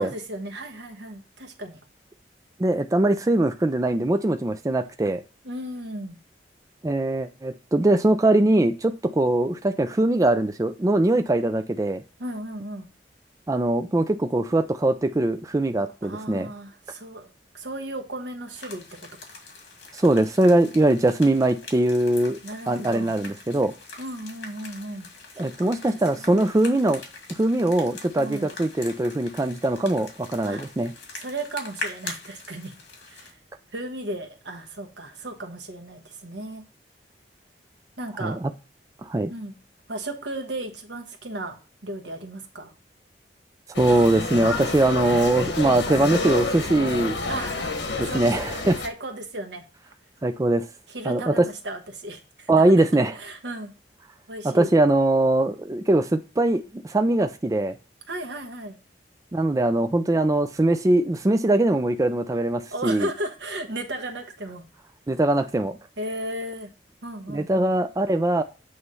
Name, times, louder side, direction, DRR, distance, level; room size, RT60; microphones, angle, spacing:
voice 1, 0.0-1.8 5.4-6.2 12.2-12.9 16.0-17.3 17.5-19.0 22.4-23.1 24.0-25.1 25.3-25.7 26.1-26.3 28.2-28.5 30.5-30.7 31.1-32.7 33.1-33.4 33.7-36.6 38.0-38.4 39.3-39.5 39.9-42.7 47.3-47.6 48.1-48.3 48.8-49.6 50.9-52.5 53.1-53.7 54.3-54.7 58.1-58.8 62.7-64.6 66.0-66.7 67.0-67.7, right 1 dB, 80° right, 1.2 m, -35 dB
voice 2, 2.6-5.2 6.8-12.0 13.5-16.5 19.9-22.4 22.7-23.7 25.4-27.0 27.3-30.9 38.2-38.5 39.0-39.3 43.8-47.2 48.0-48.8 50.2-50.7 51.1-51.4 52.5-53.1 54.4-57.7 59.3-63.1 65.1-65.8 67.3-68.4, right 2 dB, 20° right, 0.4 m, -22 dB
sound 1, 18.5-33.3, left 3 dB, 70° left, 2.2 m, -42 dB
sound 2, 43.7-48.9, left 3 dB, 85° left, 1.2 m, -29 dB
8.0 x 3.3 x 5.4 m
head